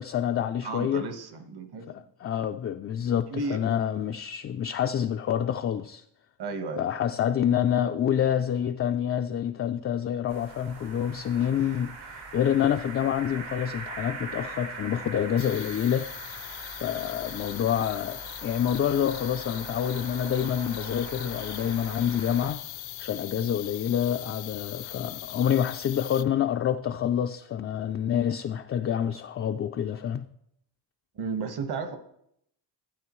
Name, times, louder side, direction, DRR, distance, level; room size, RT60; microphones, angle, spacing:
voice 1, 0.0-1.1 1.9-6.0 6.8-16.1 16.8-22.6 23.0-30.3, left 9 dB, 35° left, 0.4 m, -27 dB
voice 2, 0.6-2.0 3.3-3.6 6.4-6.9 31.1-32.0, right 4 dB, 55° right, 1.4 m, -33 dB
sound 1, 10.3-22.5, right 4 dB, 75° right, 2.2 m, -42 dB
sound 2, 15.4-26.2, left 14 dB, 80° left, 0.7 m, -40 dB
13.0 x 8.0 x 3.1 m
cardioid pair, 95°, 45 cm